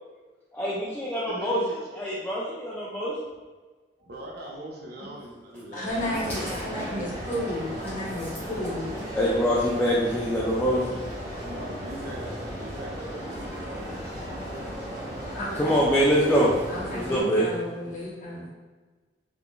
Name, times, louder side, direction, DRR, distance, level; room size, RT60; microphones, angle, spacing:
voice 1, 0.5-3.4 6.6-6.7 8.2-8.3 8.6-8.7 9.2-11.3 15.5-17.5, equal, 10° left, -6 dB, 0.3 m, -25 dB
voice 2, 1.3-1.6 4.0-5.9 11.5-14.9 15.5-15.8, right 1 dB, 60° right, -3 dB, 0.7 m, -41 dB
voice 3, 5.7-8.9 15.3-15.8 16.7-18.5, left 1 dB, 45° left, -5 dB, 0.9 m, -33 dB
sound 1, 5.9-17.2, equal, 20° right, 0.9 m, -36 dB
3.5 x 2.4 x 2.3 m, 1.4 s
head